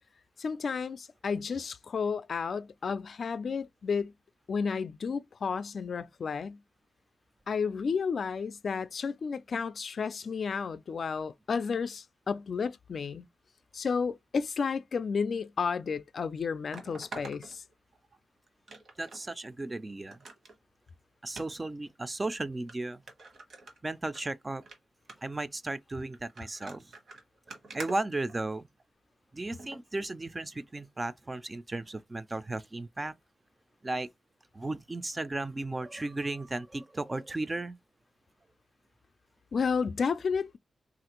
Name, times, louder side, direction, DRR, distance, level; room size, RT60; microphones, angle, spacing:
voice 1, 0.4-4.1 4.5-6.6 7.5-13.2 13.7-17.6 39.5-40.6, left 5 dB, 60° left, 0.3 m, -32 dB
sound 1, 15.7-15.8 16.7-18.2 18.7-19.2 19.6-19.7 20.1-20.6 21.3-21.5 22.2-22.3 22.7-22.8 23.1-24.2 24.6-24.8 25.1-25.4 26.1-28.8 29.6-29.8 30.3-30.4, right 3 dB, 70° right, 1.0 m, -46 dB
voice 2, 19.0-20.2 21.2-23.0 23.8-24.6 25.2-26.9 27.7-28.7 29.3-33.1 33.8-34.1 34.5-37.7, right 2 dB, 25° right, 0.3 m, -35 dB
3.2 x 2.5 x 2.9 m
wide cardioid pair, 105°, 0 cm